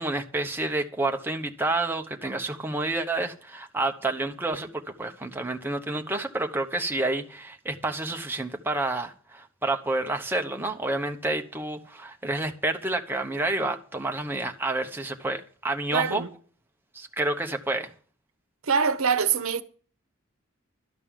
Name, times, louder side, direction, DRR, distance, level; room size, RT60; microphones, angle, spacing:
voice 1, 0.0-16.2 16.9-17.9, right 2 dB, 10° right, 0.9 m, -29 dB
voice 2, 15.9-16.3 18.6-19.6, right 6 dB, 80° right, 0.9 m, -24 dB
12.5 x 5.4 x 9.0 m
head